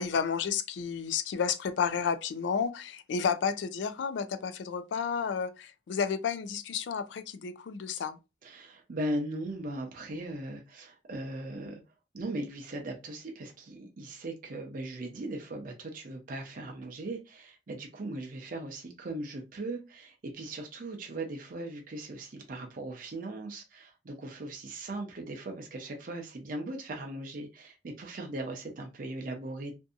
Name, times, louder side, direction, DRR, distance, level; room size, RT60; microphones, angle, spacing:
voice 1, 0.0-8.2, left 6 dB, 75° left, 0.4 m, -31 dB
voice 2, 8.4-11.8 12.1-29.7, right 1 dB, 50° right, 0.5 m, -38 dB
2.6 x 2.5 x 2.3 m
head